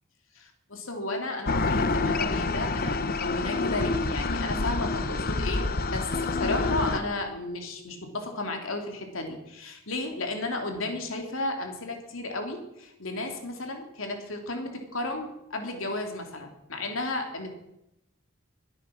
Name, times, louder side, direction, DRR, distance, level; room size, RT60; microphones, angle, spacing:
voice 1, 0.3-17.5, left 2 dB, 90° left, 3 dB, 3.0 m, -33 dB
sound 1, 1.5-7.0, left 3 dB, 50° left, 0.9 m, -27 dB
23.0 x 8.8 x 6.3 m, 0.86 s
head